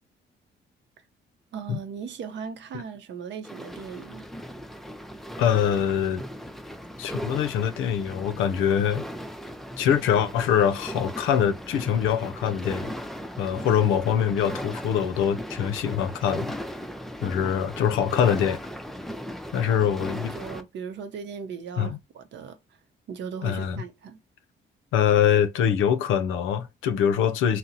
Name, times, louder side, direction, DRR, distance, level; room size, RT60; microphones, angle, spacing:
voice 1, 1.5-4.3 19.7-22.6 23.1-24.2, right 6 dB, 65° right, 0.6 m, -38 dB
sound 1, 3.4-20.6, equal, ahead, 0.4 m, -37 dB
voice 2, 5.4-6.2 7.0-9.0 9.8-12.9 13.4-16.6 17.2-18.6 19.5-20.4 21.8-22.0 23.4-23.8 24.9-27.6, left 8 dB, 85° left, 0.5 m, -24 dB
2.8 x 2.0 x 3.8 m
cardioid pair, 90°, 20 cm